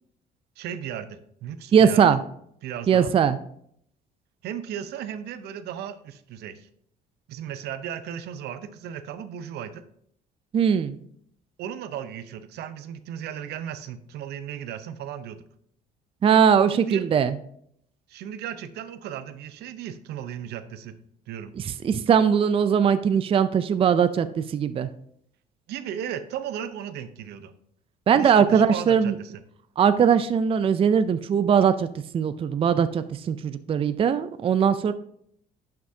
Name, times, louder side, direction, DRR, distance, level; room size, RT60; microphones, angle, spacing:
voice 1, 0.6-2.2 2.6-3.1 4.4-6.7 7.3-9.8 11.6-15.4 16.7-17.1 18.1-20.9 21.3-21.5 25.7-27.5 28.2-29.3, right 9 dB, 75° right, 11 dB, 0.8 m, -35 dB
voice 2, 1.7-2.2 2.9-3.4 10.5-11.0 16.2-17.4 21.6-24.9 28.1-29.2 29.8-31.9 32.1-34.9, right 7 dB, 35° right, 11 dB, 0.4 m, -20 dB
11.0 x 5.9 x 2.7 m, 0.68 s
cardioid pair, 110°, 17 cm